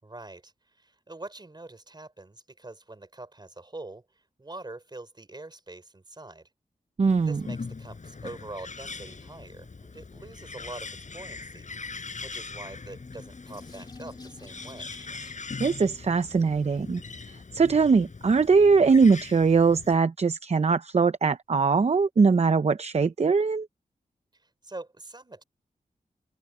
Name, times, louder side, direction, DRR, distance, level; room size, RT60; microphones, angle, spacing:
voice 1, 0.0-4.0 4.4-6.5 7.3-11.7 12.2-14.9 24.4-25.4, right 2 dB, 30° right, 4.4 m, -44 dB
Bird, 7.0-20.0, left 4 dB, 55° left, 7.1 m, -41 dB
voice 2, 7.0-7.4 15.6-17.0 17.5-23.7, right 5 dB, 45° right, 0.7 m, -21 dB
sound 1, 12.4-15.6, left 3 dB, 30° left, 2.1 m, -49 dB
open air
wide cardioid pair, 85°, 15 cm